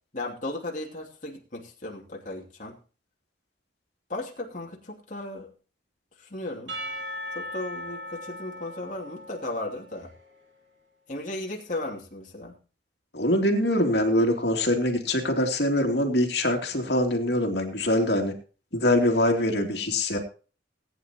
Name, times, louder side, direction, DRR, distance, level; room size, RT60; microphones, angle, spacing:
voice 1, 0.1-2.8 4.1-5.5 6.2-6.8 7.3-10.1 11.1-12.5, left 2 dB, 45° left, -1 dB, 2.7 m, -35 dB
Percussion / Church bell, 6.7-10.3, left 1 dB, 85° right, 7.2 m, -38 dB
voice 2, 13.1-18.3 18.7-20.2, left 1 dB, 60° left, 4 dB, 2.9 m, -23 dB
19.5 x 9.8 x 3.0 m, 0.36 s
head